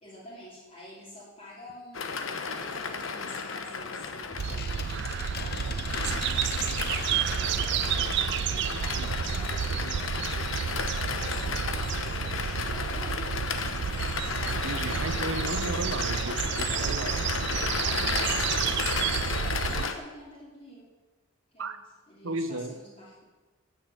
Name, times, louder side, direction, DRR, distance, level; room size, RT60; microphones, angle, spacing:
voice 1, 0.0-13.3 16.7-17.1 17.9-20.9 21.5-21.7 22.1-23.2, left 1 dB, 35° left, -9 dB, 3.0 m, -48 dB
sound 1, 1.9-20.0, left 5 dB, 75° left, 1.1 m, -33 dB
sound 2, 3.6-10.5 10.9-11.0 11.2-11.3, left 6 dB, 50° left, 0.8 m, -41 dB
sound 3, 4.4-19.9, right 8 dB, 55° right, 0.3 m, -30 dB
voice 2, 14.5-17.2 21.6-21.8 22.2-22.8, right 2 dB, 75° right, 10 dB, 0.9 m, -34 dB
10.0 x 8.2 x 8.0 m, 1.2 s
head